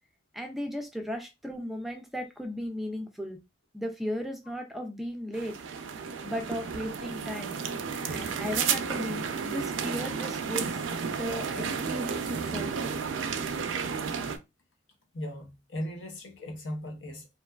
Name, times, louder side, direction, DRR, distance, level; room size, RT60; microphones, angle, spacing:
voice 1, 0.3-3.4 3.7-5.6 6.2-7.6 8.1-10.8 11.2-12.7, equal, ahead, 0.3 m, -36 dB
sound 1, 5.3-14.4, right 6 dB, 85° right, 0.4 m, -32 dB
voice 2, 15.1-17.3, equal, 75° left, 0.7 m, -37 dB
2.7 x 2.3 x 2.2 m
head